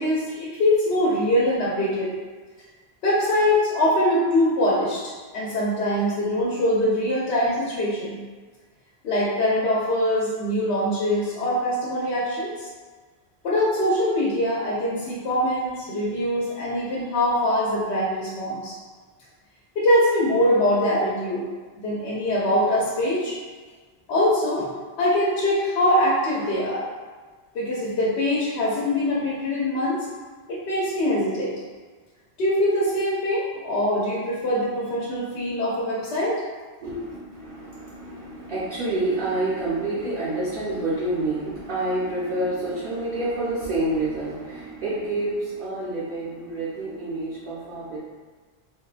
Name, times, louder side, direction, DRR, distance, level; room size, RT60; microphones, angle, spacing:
voice 1, 0.0-2.1 3.0-5.0 5.3-8.2 9.0-12.7 13.4-18.8 19.8-21.4 21.8-23.4 24.1-24.7 25.0-26.8 27.5-30.0 30.5-31.5 32.4-36.4, left 1 dB, 85° left, -6 dB, 0.9 m, -23 dB
voice 2, 36.8-48.0, right 2 dB, 55° right, -10 dB, 0.8 m, -28 dB
3.5 x 2.1 x 2.4 m, 1.4 s
omnidirectional pair, 1.1 m